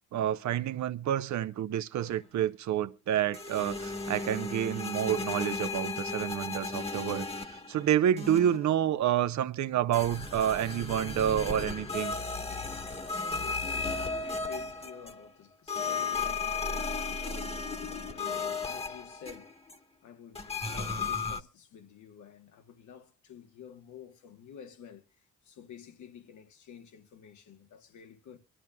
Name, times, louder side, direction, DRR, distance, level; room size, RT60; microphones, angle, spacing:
voice 1, 0.1-12.1, right 10 dB, 65° right, 0.8 m, -29 dB
sound 1, 3.3-7.8 8.2-8.7 9.9-15.3 15.7-19.7 20.4-21.4, left 4 dB, 20° left, 1.3 m, -35 dB
voice 2, 13.1-19.6 20.0-28.4, left 8 dB, 75° left, 1.4 m, -51 dB
23.5 x 12.5 x 2.3 m
supercardioid pair, 70°, 30 cm